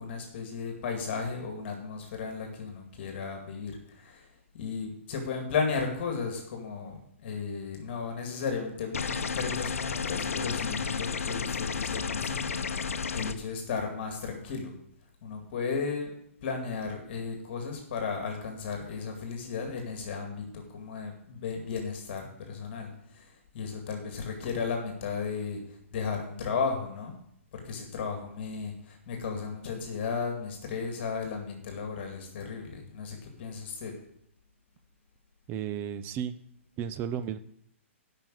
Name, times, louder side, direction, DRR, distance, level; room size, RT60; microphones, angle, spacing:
voice 1, 0.0-3.8 4.0-4.2 4.6-12.6 12.9-14.7 15.2-16.1 16.4-23.3 23.5-25.6 25.9-27.1 27.5-33.9, left 5 dB, 50° left, 3 dB, 2.2 m, -34 dB
sound 1, 8.9-13.3, left 5 dB, 85° left, 0.7 m, -32 dB
voice 2, 35.5-36.4 36.8-37.4, right 9 dB, 25° right, 12 dB, 0.6 m, -33 dB
8.9 x 5.8 x 7.7 m, 0.72 s
hypercardioid pair, 135°, 7 cm